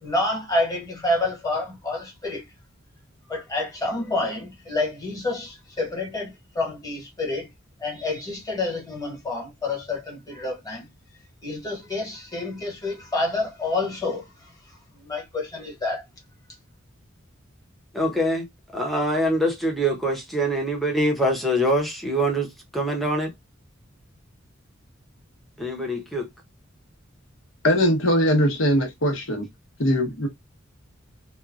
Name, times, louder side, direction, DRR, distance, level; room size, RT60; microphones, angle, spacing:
voice 1, 0.0-2.4 3.3-7.5 7.8-10.9 11.4-14.3 15.0-16.0, left 2 dB, 20° left, 1.3 m, -28 dB
voice 2, 17.9-18.5 18.7-23.3 25.6-26.3, equal, ahead, 0.8 m, -24 dB
voice 3, 27.6-29.5 29.8-30.3, equal, 70° left, 1.0 m, -21 dB
2.9 x 2.2 x 2.3 m
head